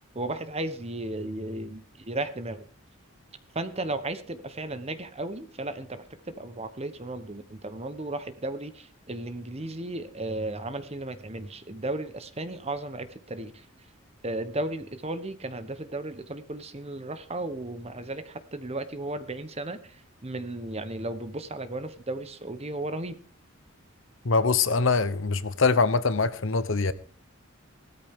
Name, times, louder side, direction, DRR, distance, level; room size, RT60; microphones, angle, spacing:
voice 1, 0.1-2.6 3.5-13.5 14.2-20.0 20.2-23.2, right 2 dB, 30° right, 1.1 m, -35 dB
voice 2, 24.2-26.9, left 4 dB, 65° left, 1.0 m, -23 dB
16.5 x 13.5 x 3.7 m
head